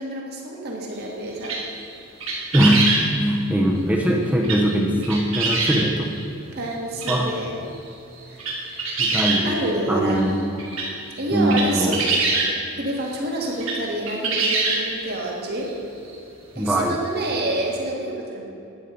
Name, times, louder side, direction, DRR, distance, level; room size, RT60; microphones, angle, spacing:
voice 1, 0.0-1.6 6.5-7.6 8.3-9.0 9.4-10.3 11.2-12.1 12.8-15.7 16.6-18.5, right 1 dB, 50° right, -1 dB, 2.0 m, -28 dB
sound 1, 1.4-1.8 2.2-3.1 4.4-4.8 5.0-5.8 6.7-6.8 7.0-7.2 7.7-7.8 8.2-9.8 10.2-10.3 10.6-12.5 13.5-13.8 14.1-15.0 15.7-15.8 16.1-16.2 17.5-17.6, right 3 dB, 75° right, 2.8 m, -23 dB
voice 2, 2.5-2.9 3.2-6.1 7.1-7.3 9.0-9.6 9.9-10.3 11.3-12.0 16.6-17.0, equal, 5° right, -1 dB, 0.9 m, -21 dB
11.0 x 9.3 x 5.3 m, 2.8 s
head